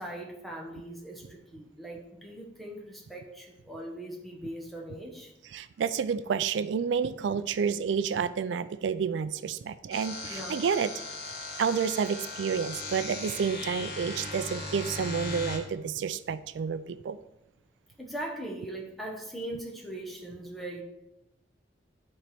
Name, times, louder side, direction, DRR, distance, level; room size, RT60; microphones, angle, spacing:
voice 1, 0.0-5.3 10.3-10.6 18.0-20.8, right 1 dB, ahead, -1 dB, 1.1 m, -40 dB
voice 2, 5.4-10.9 11.6-17.2, right 6 dB, 85° right, 14 dB, 0.3 m, -30 dB
sound 1, 9.9-15.6, left 2 dB, 60° left, 1.6 m, -38 dB
10.5 x 4.3 x 3.4 m, 0.87 s
head